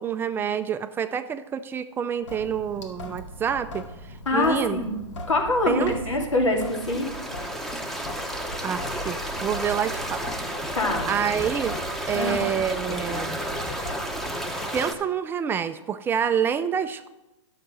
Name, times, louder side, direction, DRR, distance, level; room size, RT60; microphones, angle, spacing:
voice 1, 0.0-4.8 5.7-5.9 8.6-10.3 11.1-11.7 12.1-13.4 13.8-14.0 14.7-17.1, right 8 dB, 15° right, 10 dB, 0.3 m, -27 dB
Sink (filling or washing) / Drip, 2.2-14.7, left 1 dB, 70° left, 2.0 m, -39 dB
voice 2, 4.3-7.1 10.7-11.1 12.1-12.5, left 2 dB, 90° left, 1 dB, 2.6 m, -25 dB
sound 1, 6.6-14.9, right 1 dB, ahead, 0.8 m, -32 dB
11.0 x 6.6 x 6.1 m, 0.99 s
hypercardioid pair, 135°, 16 cm